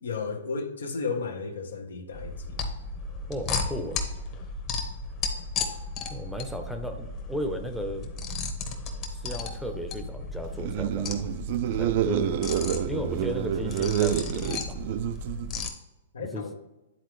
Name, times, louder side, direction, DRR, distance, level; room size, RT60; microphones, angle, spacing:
voice 1, 0.0-2.6 16.1-16.6, left 4 dB, 90° left, 4 dB, 1.1 m, -33 dB
sound 1, 2.1-15.7, left 3 dB, 35° left, 1.0 m, -34 dB
voice 2, 3.3-4.0 6.1-8.1 9.1-11.3 11.8-12.4 12.8-14.8 16.2-16.4, equal, ahead, 5 dB, 0.6 m, -35 dB
sound 2, 10.5-15.6, right 11 dB, 50° right, 0.3 m, -28 dB
10.0 x 4.0 x 3.1 m, 1.0 s
hypercardioid pair, 135°, 0 cm